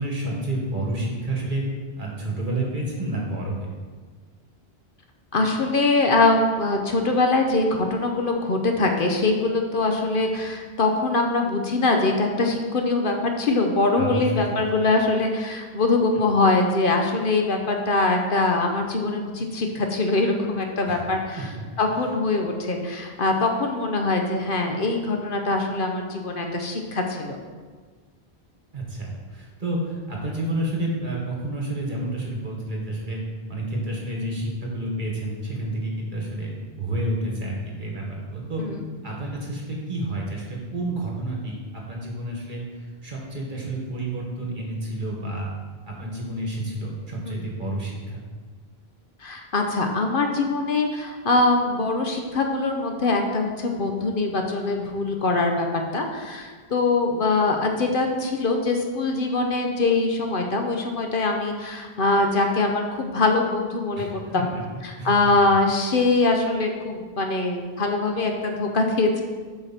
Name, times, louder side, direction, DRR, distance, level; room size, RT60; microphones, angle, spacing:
voice 1, 0.0-1.6 2.0-3.7 13.9-14.6 20.9-21.1 21.4-21.6 28.7-33.2 33.5-36.5 36.8-38.6 39.0-42.6 43.0-45.5 45.8-48.2 64.0-64.6 65.0-65.3, right 1 dB, 50° right, -2 dB, 1.8 m, -30 dB
voice 2, 5.3-21.5 21.8-27.4 38.6-38.8 47.3-47.4 49.2-55.7 55.9-64.5 64.8-69.2, left 3 dB, 60° left, 3 dB, 1.0 m, -23 dB
8.0 x 6.3 x 4.3 m, 1.5 s
omnidirectional pair, 1.1 m